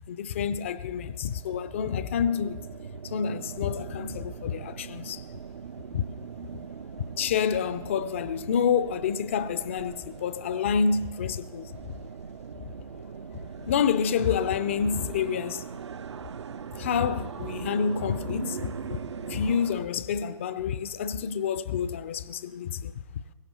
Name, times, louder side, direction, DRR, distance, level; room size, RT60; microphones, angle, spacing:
voice 1, 0.1-2.7 3.0-5.3 5.9-6.0 7.2-11.7 13.6-15.6 16.7-23.0, left 7 dB, 20° left, 0.4 m, -28 dB
sound 1, 0.9-19.9, right 6 dB, 55° right, 0.5 m, -40 dB
22.0 x 17.0 x 2.9 m
figure-of-eight pair, 140°, 18 cm